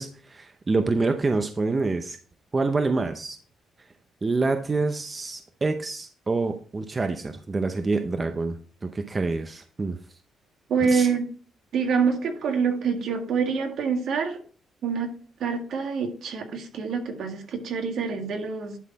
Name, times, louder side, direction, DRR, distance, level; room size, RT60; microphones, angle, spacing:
voice 1, 0.0-2.2 2.5-3.4 4.2-8.6 8.8-10.0 10.9-11.1, right 3 dB, 30° right, 7 dB, 0.7 m, -26 dB
voice 2, 10.7-11.2 11.7-14.4 14.8-15.2 15.4-18.8, right 5 dB, 70° right, 4 dB, 1.7 m, -26 dB
11.0 x 4.1 x 4.2 m, 0.42 s
cardioid pair, 90°, 0 cm